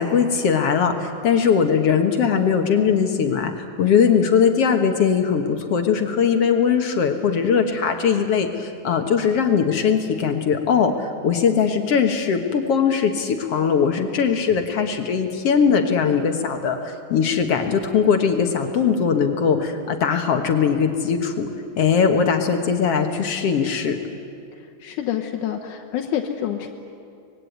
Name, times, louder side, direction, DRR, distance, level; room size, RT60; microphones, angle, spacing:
voice 1, 0.0-3.5 3.8-21.5 21.8-24.0, left 6 dB, 60° left, 5 dB, 2.1 m, -20 dB
voice 2, 24.6-26.7, left 10 dB, 90° left, 2 dB, 2.5 m, -27 dB
25.5 x 20.0 x 9.3 m, 2.5 s
omnidirectional pair, 3.5 m